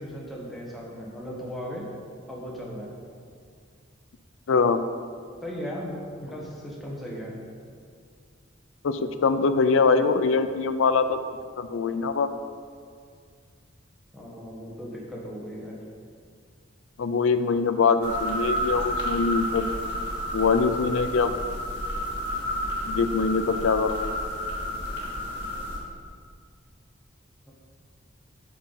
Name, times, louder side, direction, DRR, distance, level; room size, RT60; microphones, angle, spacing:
voice 1, 0.0-1.9 2.3-3.0 5.4-7.4 14.1-15.8, equal, ahead, -4 dB, 1.2 m, -37 dB
voice 2, 4.5-4.8 8.8-11.2 11.6-12.4 17.0-19.6 20.3-21.3 22.9-24.2, left 4 dB, 80° left, 10 dB, 0.4 m, -23 dB
sound 1, 18.0-25.8, equal, 60° left, 1.8 m, -30 dB
8.4 x 5.8 x 4.0 m, 2.1 s
head